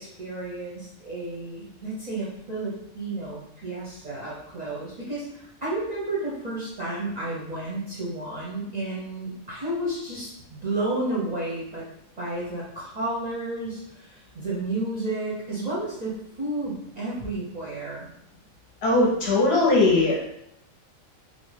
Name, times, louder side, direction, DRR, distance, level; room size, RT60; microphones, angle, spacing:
voice 1, 0.0-11.8 12.2-18.1, right 2 dB, 45° right, -7 dB, 0.5 m, -32 dB
voice 2, 18.8-20.3, left 2 dB, 60° left, -3 dB, 0.8 m, -20 dB
2.6 x 2.1 x 3.2 m, 0.76 s
omnidirectional pair, 1.4 m